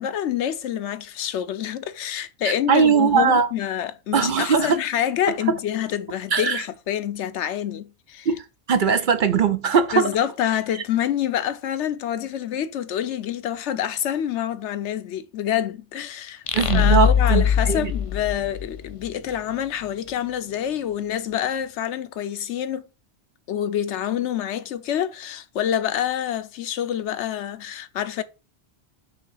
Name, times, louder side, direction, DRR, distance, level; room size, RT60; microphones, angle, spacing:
voice 1, 0.0-8.3 9.9-16.4 16.7-22.8 23.5-28.2, left 10 dB, 85° left, 1.0 m, -27 dB
voice 2, 2.4-3.5 4.1-4.8 6.3-6.6 8.3-10.1 16.5-17.9, right 6 dB, 55° right, 0.6 m, -20 dB
sound 1, 16.5-19.1, left 8 dB, 50° left, 0.4 m, -21 dB
5.3 x 3.6 x 5.6 m
omnidirectional pair, 1.1 m